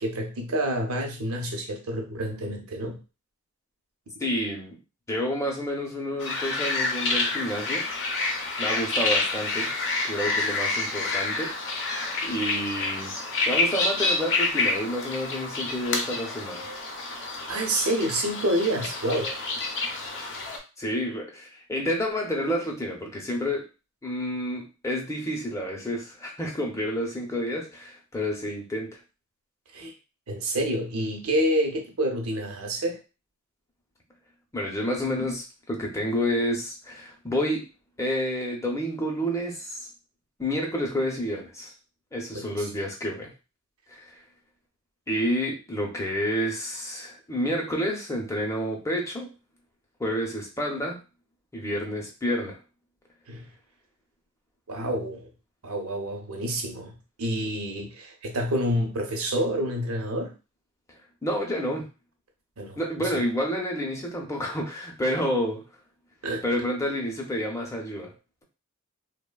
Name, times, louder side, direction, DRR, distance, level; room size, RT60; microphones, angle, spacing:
voice 1, 0.0-3.0 17.5-19.3 29.7-29.9 30.3-33.0 42.3-42.7 53.3-53.5 54.7-55.3 55.6-60.3 62.6-63.1 66.2-66.4, right 1 dB, 80° right, 1 dB, 0.7 m, -28 dB
voice 2, 4.2-4.8 5.1-7.9 8.6-9.7 10.0-11.5 12.2-13.1 13.5-16.7 20.8-23.7 24.0-28.9 34.5-37.6 38.0-39.9 40.4-41.7 42.1-43.3 43.9-44.1 45.1-49.3 50.0-51.0 51.5-52.6 61.2-61.8 62.8-65.6 66.4-68.1, equal, 15° left, -1 dB, 0.6 m, -29 dB
sound 1, 6.2-20.6, left 3 dB, 60° left, 0.6 m, -28 dB
3.0 x 2.1 x 2.2 m, 0.31 s
head